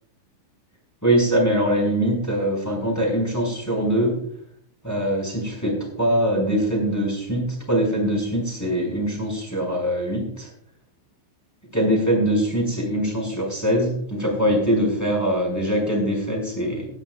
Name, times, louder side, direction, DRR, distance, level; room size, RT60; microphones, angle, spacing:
voice 1, 1.0-4.2 4.8-10.5 11.7-16.9, equal, 5° left, -1 dB, 4.7 m, -22 dB
18.0 x 13.0 x 2.4 m, 0.66 s
omnidirectional pair, 5.9 m